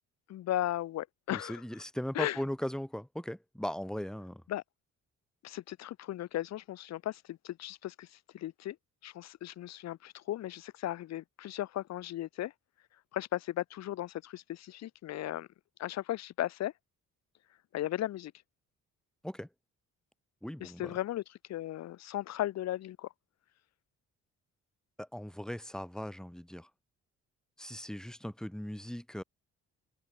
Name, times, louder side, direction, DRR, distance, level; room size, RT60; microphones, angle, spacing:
voice 1, 0.3-1.6 2.1-2.4 4.5-4.6 5.4-8.8 9.0-12.5 13.1-15.5 15.8-16.7 17.7-18.3 20.6-21.2 21.5-23.1, left 13 dB, 60° left, 0.7 m, -36 dB
voice 2, 1.3-4.4 19.2-19.5 20.4-21.0 25.0-26.7 27.6-29.2, equal, ahead, 1.4 m, -38 dB
cardioid pair, 90°, 30 cm